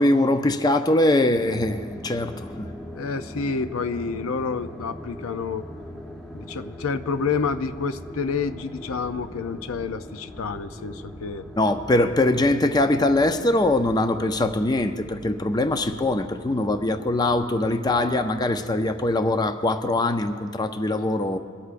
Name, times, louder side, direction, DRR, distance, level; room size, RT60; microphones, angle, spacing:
voice 1, 0.0-2.7 11.6-21.4, left 2 dB, 20° left, 8 dB, 0.4 m, -22 dB
sound 1, 1.3-19.4, equal, 5° left, 1.0 m, -41 dB
voice 2, 2.9-5.7 6.3-11.5, left 5 dB, 85° left, 11 dB, 0.5 m, -29 dB
23.0 x 13.0 x 2.5 m, 2.1 s
head